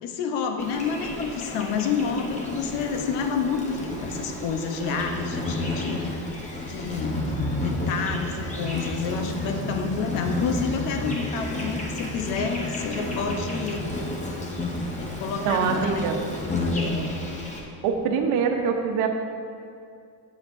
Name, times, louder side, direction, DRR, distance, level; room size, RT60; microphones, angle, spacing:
voice 1, 0.0-6.1 6.6-7.4 7.6-13.9 15.0-16.1 16.5-17.1, left 5 dB, 80° left, 5 dB, 1.0 m, -29 dB
Insect, 0.6-17.6, left 1 dB, 15° left, 0.9 m, -31 dB
voice 2, 15.4-16.2 17.8-19.1, right 6 dB, 85° right, 3 dB, 1.0 m, -24 dB
11.5 x 8.1 x 2.6 m, 2.4 s
cardioid pair, 155°, 41 cm